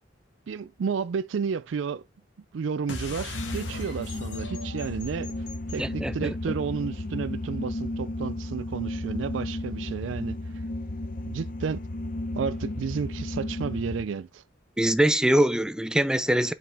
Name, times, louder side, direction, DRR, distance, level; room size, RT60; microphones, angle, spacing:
voice 1, 0.5-2.0 2.5-5.3 5.7-10.4 11.3-11.8 12.3-14.4, right 6 dB, 80° right, 0.4 m, -31 dB
sound 1, 2.9-7.8, left 2 dB, 75° left, 1.8 m, -41 dB
sound 2, 3.3-14.0, left 1 dB, 45° left, 0.8 m, -34 dB
voice 2, 5.8-6.3 14.8-16.5, right 1 dB, 5° right, 0.4 m, -23 dB
7.5 x 5.5 x 3.4 m
head